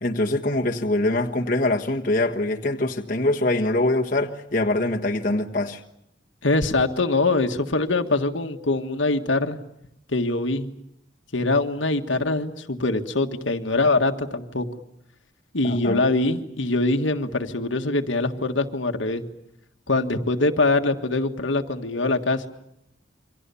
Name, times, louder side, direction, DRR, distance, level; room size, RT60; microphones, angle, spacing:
voice 1, 0.0-5.8 15.6-16.0, left 2 dB, 45° left, 1.5 m, -23 dB
voice 2, 6.4-9.6 10.1-10.7 11.3-14.7 15.5-19.2 19.9-22.5, left 2 dB, 85° left, 1.7 m, -23 dB
29.0 x 24.5 x 7.1 m
head